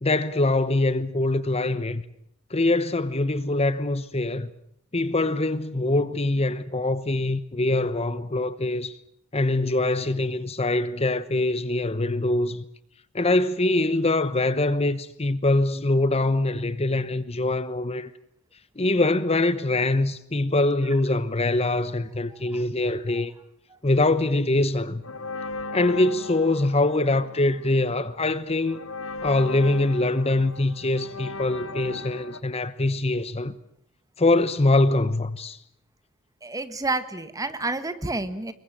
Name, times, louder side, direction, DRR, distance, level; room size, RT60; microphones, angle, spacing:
voice 1, 0.0-2.0 2.5-4.5 4.9-8.9 9.3-12.6 13.1-18.1 18.8-23.3 23.8-25.0 25.7-28.8 29.2-33.5 34.2-35.6, left 2 dB, 30° left, 1.0 m, -23 dB
sound 1, 25.0-32.4, left 3 dB, 70° left, 1.4 m, -38 dB
voice 2, 36.4-38.5, right 2 dB, 15° right, 1.6 m, -30 dB
26.0 x 22.5 x 7.5 m
head